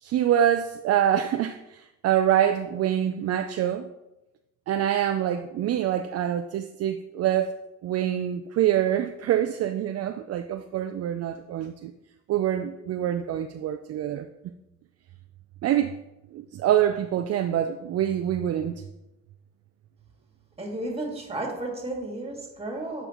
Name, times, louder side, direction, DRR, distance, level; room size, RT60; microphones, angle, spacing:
voice 1, 0.0-3.9 4.7-7.5 7.8-11.9 12.3-14.3 15.6-15.9 16.3-18.8, right 10 dB, 55° right, 8 dB, 0.4 m, -25 dB
voice 2, 20.6-23.1, right 2 dB, 20° right, 0 dB, 1.9 m, -33 dB
8.1 x 5.2 x 3.0 m, 0.94 s
cardioid pair, 90°, 30 cm